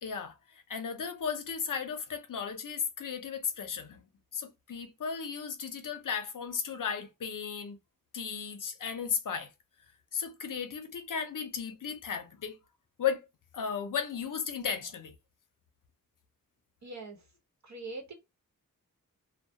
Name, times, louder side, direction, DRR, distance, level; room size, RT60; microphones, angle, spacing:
voice 1, 0.0-4.0 4.3-7.8 8.1-9.5 10.1-12.6 13.0-13.3 13.5-15.1, left 7 dB, 70° left, 0.6 m, -35 dB
voice 2, 16.8-17.2 17.6-18.1, right 3 dB, 55° right, 0.9 m, -42 dB
2.2 x 2.1 x 2.7 m
wide cardioid pair, 65°, 33 cm